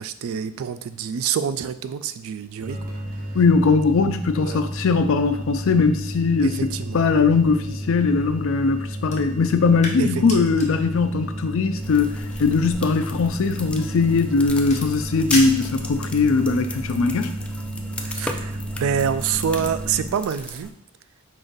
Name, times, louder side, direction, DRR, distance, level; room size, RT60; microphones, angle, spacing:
voice 1, 0.0-2.8 4.4-4.6 6.4-7.0 10.0-10.6 18.0-20.7, right 7 dB, 75° right, 12 dB, 0.3 m, -27 dB
sound 1, 2.6-20.1, right 1 dB, 45° right, 1.0 m, -32 dB
voice 2, 3.3-17.4, left 4 dB, 70° left, 8 dB, 0.4 m, -20 dB
sound 2, 9.0-16.4, left 2 dB, 35° left, 0.9 m, -36 dB
sound 3, 11.8-20.7, left 1 dB, 5° left, 0.3 m, -37 dB
5.0 x 3.8 x 2.6 m, 0.68 s
head